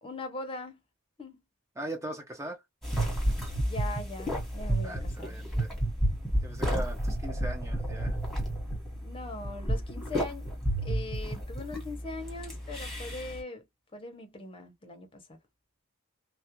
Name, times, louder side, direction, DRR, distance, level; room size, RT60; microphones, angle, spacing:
voice 1, 0.0-0.8 1.2-1.4 3.6-5.3 9.0-10.5 10.8-13.7 13.9-15.2, left 2 dB, 25° left, 0.6 m, -41 dB
voice 2, 1.8-2.6 4.8-5.7 6.4-8.2, right 1 dB, 15° right, 0.4 m, -39 dB
sound 1, 2.8-13.4, right 1 dB, ahead, 1.1 m, -31 dB
2.3 x 2.1 x 2.7 m
head